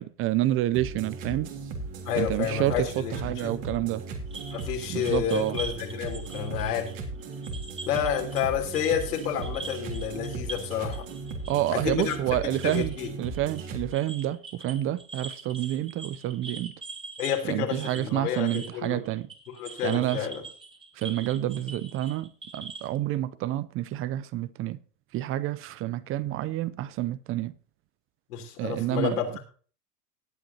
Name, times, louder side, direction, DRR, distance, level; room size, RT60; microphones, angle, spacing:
voice 1, 0.0-1.5 2.2-4.0 4.9-5.6 11.5-16.7 17.5-19.3 19.8-20.3 21.0-24.8 25.1-27.5 28.6-29.4, right 14 dB, 30° right, 0.5 m, -29 dB
sound 1, 0.7-13.9, right 3 dB, 55° right, 3.4 m, -37 dB
voice 2, 2.0-3.5 4.5-6.9 7.8-11.0 11.7-13.1 17.2-19.0 19.5-20.4 28.3-29.4, left 8 dB, 75° left, 3.4 m, -30 dB
sound 2, 4.3-8.5 8.7-22.9, right 4 dB, 10° right, 2.7 m, -43 dB
18.5 x 8.8 x 2.8 m
hypercardioid pair, 100°, 47 cm